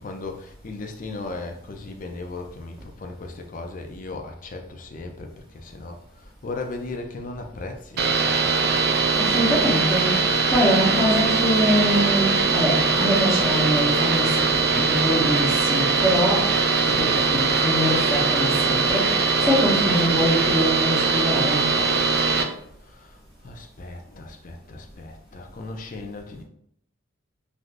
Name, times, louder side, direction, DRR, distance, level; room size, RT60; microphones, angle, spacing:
voice 1, 0.0-8.5 22.8-26.4, left 3 dB, 40° left, 4 dB, 0.4 m, -37 dB
sound 1, 8.0-22.4, right 4 dB, 50° right, 0.4 m, -21 dB
voice 2, 9.2-10.2 10.5-16.6 16.8-21.8, equal, ahead, -9 dB, 0.8 m, -24 dB
3.3 x 2.5 x 2.5 m, 0.70 s
head